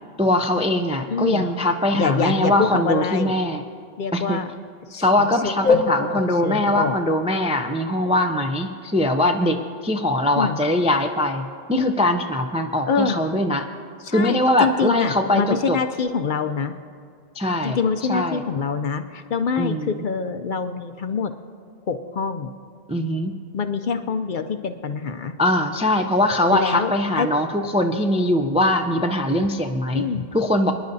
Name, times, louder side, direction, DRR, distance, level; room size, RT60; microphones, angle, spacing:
voice 1, 0.2-3.6 4.1-4.4 5.0-13.7 14.1-15.8 17.3-17.8 18.1-18.4 19.6-20.0 22.9-23.4 25.4-30.1 30.3-30.7, left 1 dB, 10° right, 4 dB, 0.3 m, -21 dB
voice 2, 1.1-1.5 1.9-3.3 4.0-4.5 4.9-7.0 10.4-10.6 12.9-13.2 14.0-16.8 17.6-21.3 21.8-22.5 23.5-25.3 26.5-27.3 29.9-30.3, left 5 dB, 55° left, 8 dB, 0.7 m, -25 dB
26.0 x 10.5 x 2.7 m, 2.2 s
omnidirectional pair, 1.1 m